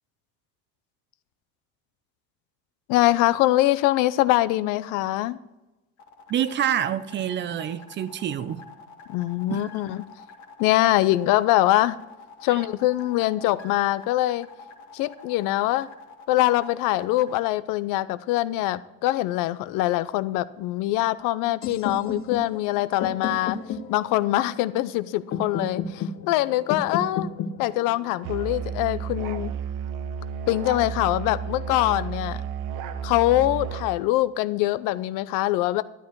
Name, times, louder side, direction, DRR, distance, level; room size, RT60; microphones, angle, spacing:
voice 1, 2.9-5.4 9.1-10.0 10.6-12.0 12.4-14.5 14.9-15.9 16.3-23.6 23.9-27.3 27.6-29.5 30.5-32.4 33.0-35.8, left 16 dB, 80° left, 0.6 m, -23 dB
sound 1, 6.0-17.3, left 4 dB, 65° left, 1.9 m, -47 dB
voice 2, 6.3-8.6 9.5-9.6 12.5-12.6, right 10 dB, 35° right, 0.6 m, -27 dB
sound 2, 21.6-29.5, left 6 dB, 45° left, 1.0 m, -34 dB
Musical instrument, 28.2-33.9, right 7 dB, 80° right, 0.8 m, -32 dB
12.0 x 9.7 x 4.6 m
cardioid pair, 145°, 32 cm